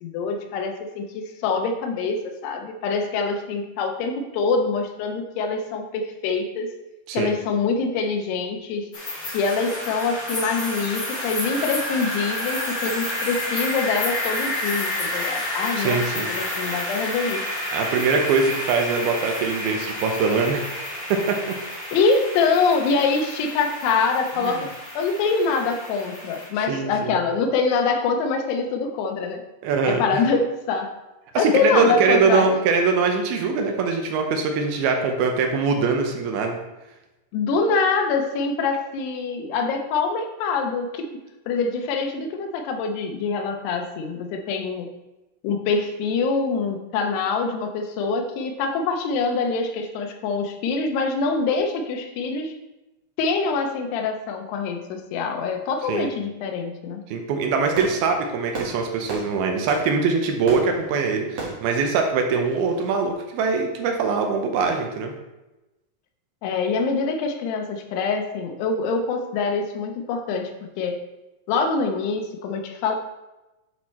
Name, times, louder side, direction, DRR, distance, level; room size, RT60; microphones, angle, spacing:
voice 1, 0.0-6.7 7.1-8.8 9.3-16.0 16.3-17.4 21.9-29.4 29.8-30.9 31.4-32.5 37.3-41.2 41.5-44.9 45.4-52.5 53.2-57.0 66.4-70.5 70.8-71.0 71.5-73.0, left 4 dB, 85° left, 4 dB, 3.0 m, -24 dB
sound 1, 8.9-26.5, left 1 dB, 40° left, 3.9 m, -30 dB
voice 2, 15.8-16.3 17.7-21.4 24.4-24.6 26.7-27.2 29.6-30.0 31.3-36.6 55.9-56.1 57.1-65.1, right 4 dB, 75° right, 4 dB, 2.6 m, -22 dB
Fireworks, 57.4-63.0, right 3 dB, 45° right, 2.4 m, -36 dB
10.5 x 4.5 x 4.3 m, 1.0 s
omnidirectional pair, 4.7 m